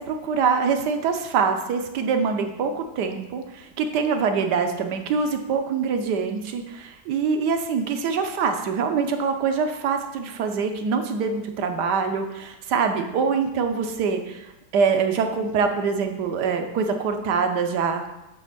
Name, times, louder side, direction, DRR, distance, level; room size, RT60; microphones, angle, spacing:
voice 1, 0.0-18.0, right 5 dB, 65° right, 6 dB, 1.3 m, -24 dB
8.5 x 3.5 x 6.7 m, 0.96 s
omnidirectional pair, 2.1 m